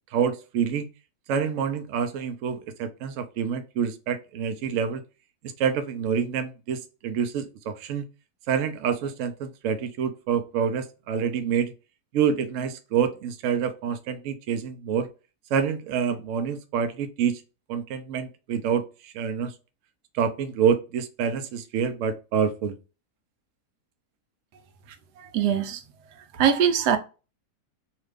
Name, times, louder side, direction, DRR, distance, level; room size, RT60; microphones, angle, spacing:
voice 1, 0.1-0.9 1.3-5.0 5.6-8.0 8.5-11.7 12.1-15.1 15.5-17.4 17.7-19.5 20.1-22.7, right 7 dB, 65° right, 0.8 m, -27 dB
voice 2, 25.3-25.8 26.4-27.0, right 8 dB, 85° right, 1.2 m, -21 dB
2.9 x 2.5 x 3.2 m
omnidirectional pair, 1.7 m